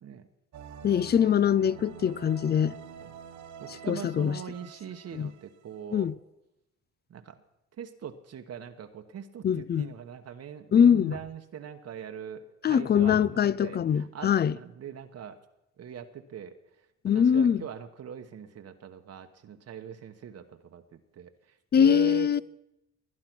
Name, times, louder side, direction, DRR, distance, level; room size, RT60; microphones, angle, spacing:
sound 1, 0.5-5.9, right 8 dB, 75° right, 2.0 m, -47 dB
voice 1, 0.8-2.7 3.9-4.4 5.1-5.3 5.9-6.1 9.4-9.9 10.7-11.2 12.6-14.6 17.0-17.6 21.7-22.4, left 8 dB, 35° left, 0.5 m, -23 dB
voice 2, 3.6-6.1 7.1-7.4 7.8-15.4 15.8-16.5 17.1-21.3 21.8-22.3, right 8 dB, 55° right, 1.1 m, -41 dB
20.0 x 9.7 x 6.1 m
cardioid pair, 90°, 30 cm